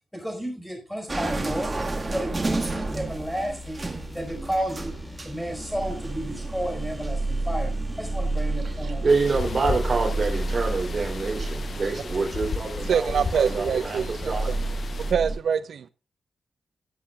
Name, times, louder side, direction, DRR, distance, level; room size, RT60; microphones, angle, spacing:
voice 1, 0.1-1.7 2.1-3.8 4.1-4.9 5.2-9.0, equal, 5° left, 4.7 m, -32 dB
sound 1, 1.1-15.4, right 2 dB, 25° right, 1.7 m, -31 dB
sound 2, 2.1-11.2, left 4 dB, 20° left, 3.5 m, -44 dB
voice 2, 8.8-14.5, right 4 dB, 45° right, 3.2 m, -26 dB
sound 3, 9.1-15.1, left 5 dB, 50° left, 0.8 m, -35 dB
voice 3, 12.9-14.6 15.0-15.9, right 7 dB, 80° right, 0.5 m, -25 dB
18.0 x 8.5 x 2.4 m
wide cardioid pair, 110°, 0 cm